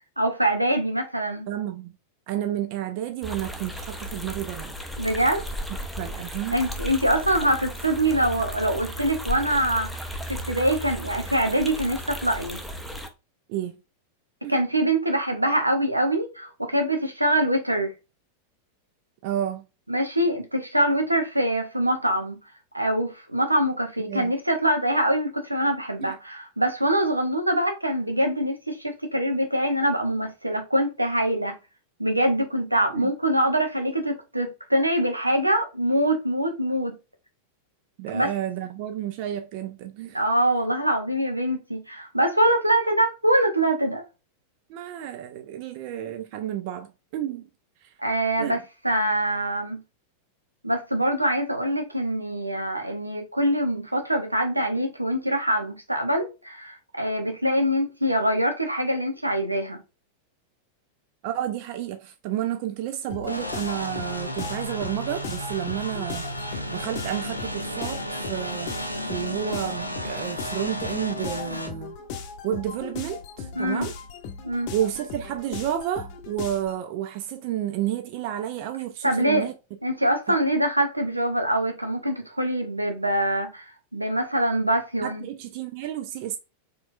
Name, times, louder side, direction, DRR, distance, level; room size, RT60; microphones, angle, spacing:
voice 1, 0.2-1.5 5.0-5.4 6.5-9.9 10.3-12.6 14.5-17.9 19.9-22.4 22.7-31.6 32.0-37.0 38.1-38.3 40.1-44.0 48.0-49.8 50.6-59.8 73.5-73.9 74.4-74.7 79.0-79.5 79.8-85.2, right 1 dB, 85° right, 0.8 m, -24 dB
voice 2, 1.5-1.9 2.3-4.7 6.0-6.6 13.5-13.7 14.4-14.5 19.2-19.6 24.1-24.3 26.0-26.1 32.9-33.1 38.0-40.2 44.7-47.5 47.8-47.9 48.4-48.6 61.2-66.3 66.7-72.0 72.4-73.9 74.7-79.5 80.3-80.4 85.0-86.4, right 11 dB, 45° right, 0.4 m, -31 dB
sound 1, 3.2-13.1, equal, ahead, 0.6 m, -35 dB
sound 2, 63.1-76.8, left 6 dB, 45° left, 0.7 m, -38 dB
sound 3, 63.3-71.7, equal, 90° left, 0.5 m, -33 dB
4.3 x 3.1 x 2.4 m
figure-of-eight pair, 90°, 0 cm